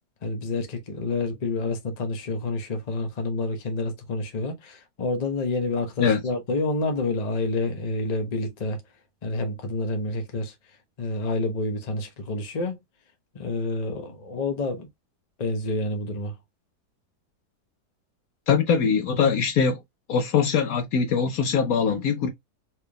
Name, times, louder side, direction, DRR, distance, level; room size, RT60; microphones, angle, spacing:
voice 1, 0.2-8.8 9.2-10.5 11.0-12.8 13.3-14.9 15.4-16.3, left 2 dB, 30° left, 0.8 m, -28 dB
voice 2, 18.5-19.8 20.1-22.3, left 6 dB, 65° left, 1.1 m, -22 dB
4.4 x 3.4 x 2.3 m
omnidirectional pair, 1.8 m